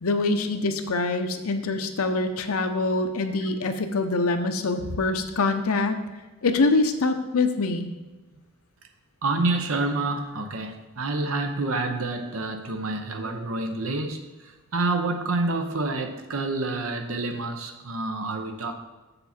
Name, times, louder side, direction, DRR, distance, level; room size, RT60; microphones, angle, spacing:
voice 1, 0.0-6.0 6.4-7.9, left 3 dB, 90° left, 6 dB, 0.7 m, -24 dB
voice 2, 9.2-14.2 14.7-18.7, right 2 dB, 75° right, 6 dB, 0.8 m, -28 dB
6.9 x 6.8 x 4.3 m, 1.2 s
head